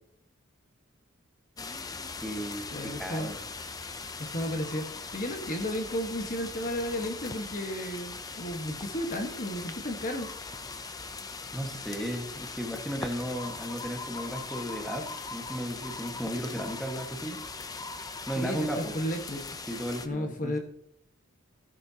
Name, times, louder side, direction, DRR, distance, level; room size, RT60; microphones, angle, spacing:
sound 1, 1.6-20.1, left 4 dB, 15° left, 0.5 m, -40 dB
voice 1, 2.2-3.4 11.5-17.4 18.3-18.9 19.7-20.6, equal, ahead, 1 dB, 1.5 m, -35 dB
voice 2, 2.7-3.3 4.2-4.9 5.1-10.3 18.4-19.5 20.0-20.6, equal, 40° left, 4 dB, 1.4 m, -33 dB
15.0 x 11.0 x 2.9 m, 0.71 s
head